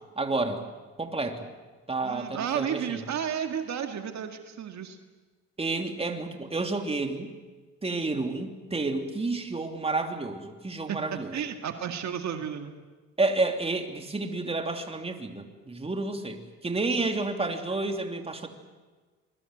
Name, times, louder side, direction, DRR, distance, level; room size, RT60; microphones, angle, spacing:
voice 1, 0.2-0.6 1.0-1.4 1.9-3.0 5.6-7.3 7.8-11.3 13.2-18.5, right 3 dB, 20° right, 5 dB, 3.0 m, -30 dB
voice 2, 2.0-5.0 10.9-12.7, right 8 dB, 65° right, 6 dB, 2.1 m, -33 dB
28.0 x 22.0 x 8.0 m, 1.3 s
cardioid pair, 90°, 30 cm